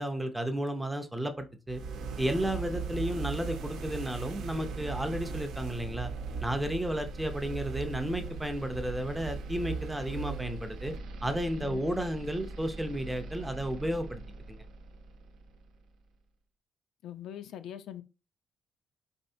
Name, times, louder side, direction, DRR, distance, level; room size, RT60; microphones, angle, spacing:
voice 1, 0.0-1.8 2.2-6.1 6.4-10.9 11.2-14.2 14.5-14.6, equal, 5° right, 0.5 m, -33 dB
sound 1, 1.7-15.6, right 4 dB, 85° right, 0.7 m, -39 dB
voice 2, 17.0-18.0, left 10 dB, 75° left, 0.5 m, -42 dB
4.3 x 4.1 x 2.6 m
cardioid pair, 180°, 0 cm